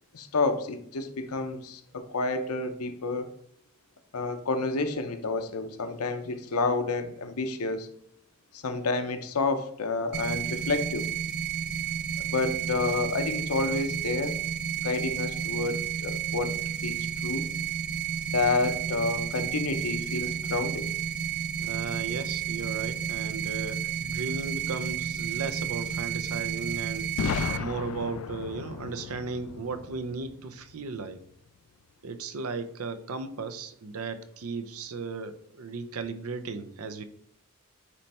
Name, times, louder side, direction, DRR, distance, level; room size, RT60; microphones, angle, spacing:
voice 1, 0.1-3.3 4.1-7.9 8.5-11.1 12.3-14.4 14.8-16.6 16.8-17.5 18.3-20.9, left 3 dB, 90° left, 8 dB, 0.8 m, -29 dB
sound 1, 10.1-27.6, right 8 dB, 45° right, 0.3 m, -32 dB
voice 2, 21.6-27.1 27.6-31.2 32.0-37.0, right 4 dB, 80° right, 11 dB, 0.6 m, -36 dB
Boom, 27.2-31.0, left 6 dB, 70° left, 0.3 m, -35 dB
9.5 x 3.3 x 4.2 m, 0.67 s
head